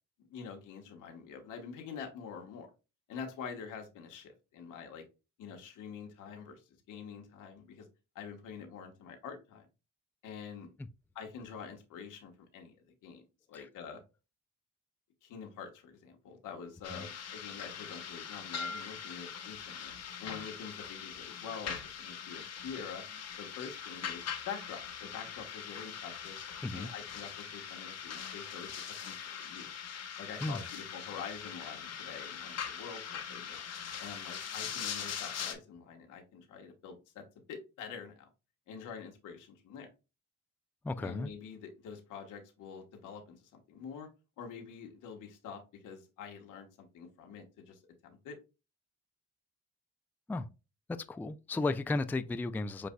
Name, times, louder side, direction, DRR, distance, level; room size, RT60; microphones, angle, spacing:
voice 1, 0.2-2.7 3.1-5.0 5.4-7.9 8.1-9.7 10.2-10.7 11.1-12.8 13.0-13.2 13.5-14.0 15.2-19.9 20.2-23.0 23.4-26.4 26.7-28.7 29.0-29.7 30.2-33.0 33.3-33.6 34.0-37.2 37.5-38.3 38.7-39.9 41.0-44.1 44.4-48.4, left 6 dB, 85° left, 1.3 m, -46 dB
sound 1, 16.8-35.5, left 7 dB, 55° left, 1.0 m, -42 dB
voice 2, 40.8-41.3 50.3-50.5 51.1-52.9, left 2 dB, 5° left, 0.3 m, -34 dB
7.8 x 2.7 x 2.2 m
cardioid pair, 90°, 30 cm